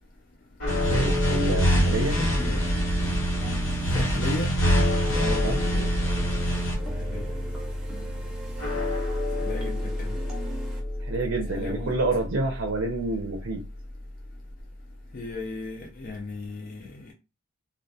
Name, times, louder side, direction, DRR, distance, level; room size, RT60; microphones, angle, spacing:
sound 1, 0.6-14.8, left 2 dB, 65° left, 1.2 m, -31 dB
sound 2, 0.7-6.7, right 1 dB, 85° left, 1.0 m, -25 dB
voice 1, 0.8-2.2 5.4-5.6 11.1-13.6, right 2 dB, 65° right, 0.5 m, -28 dB
sound 3, 1.7-10.8, right 2 dB, 5° right, 0.6 m, -40 dB
voice 2, 1.9-2.7 3.9-4.5 5.1-5.9 7.1-7.3 9.4-10.2 11.5-11.9 15.1-17.1, left 2 dB, 45° left, 0.4 m, -36 dB
2.2 x 2.1 x 2.6 m
head